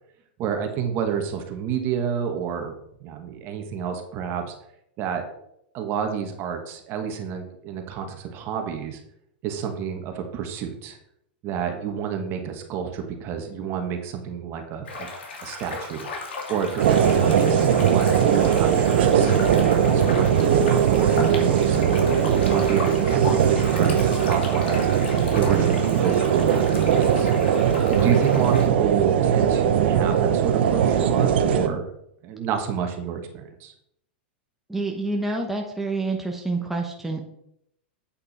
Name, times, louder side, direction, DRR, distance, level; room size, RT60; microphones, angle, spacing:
voice 1, 0.4-2.7 3.0-4.5 5.0-5.4 5.7-9.0 9.4-11.0 11.4-15.1 15.4-21.8 22.1-24.9 25.3-27.3 27.9-31.9 32.2-33.7, right 7 dB, 40° right, 5 dB, 1.5 m, -29 dB
sound 1, 14.8-28.7, left 3 dB, 80° left, 2.3 m, -35 dB
sound 2, 16.8-31.7, right 8 dB, 70° right, 0.9 m, -20 dB
voice 2, 34.7-37.3, right 2 dB, 5° right, 0 dB, 1.0 m, -27 dB
8.5 x 5.3 x 4.3 m, 0.76 s
hypercardioid pair, 125°, 6 cm